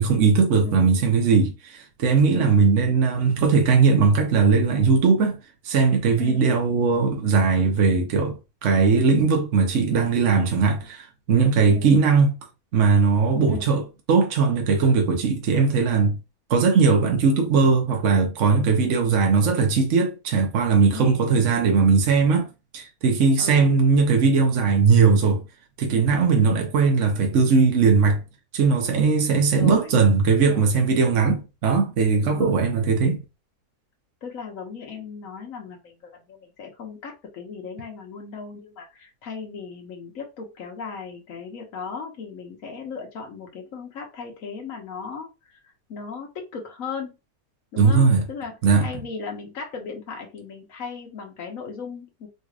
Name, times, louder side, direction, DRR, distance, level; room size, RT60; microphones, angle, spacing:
voice 1, 0.0-5.4 5.6-12.3 12.7-13.8 14.1-16.2 16.5-22.5 22.7-25.4 25.8-28.2 28.5-33.2 47.8-48.2 48.6-48.9, right 5 dB, 55° right, 1.1 m, -19 dB
voice 2, 6.2-6.5 11.6-11.9 13.5-13.8 20.9-21.9 23.4-23.8 29.5-30.0 30.3-30.6 32.2-32.5 34.2-45.6 45.9-47.1 47.7-52.3, left 5 dB, 65° left, 1.4 m, -37 dB
4.0 x 3.1 x 2.4 m
omnidirectional pair, 1.6 m